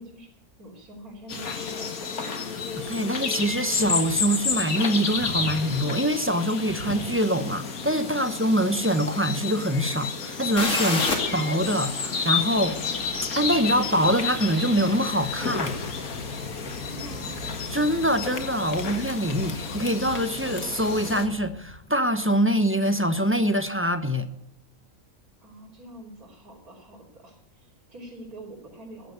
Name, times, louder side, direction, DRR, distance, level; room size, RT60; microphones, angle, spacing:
voice 1, 0.0-2.2 16.7-17.4 25.4-29.1, right 1 dB, 90° right, 4.1 m, -45 dB
sound 1, 1.3-21.3, left 5 dB, 75° left, 2.1 m, -31 dB
voice 2, 2.8-11.1 11.3-12.9 13.4-15.8 17.7-24.3, equal, 10° right, 1.0 m, -24 dB
sound 2, 10.6-16.2, left 2 dB, 60° left, 2.9 m, -33 dB
sound 3, 12.1-21.8, right 1 dB, 60° right, 2.6 m, -43 dB
15.0 x 11.5 x 8.2 m
omnidirectional pair, 1.5 m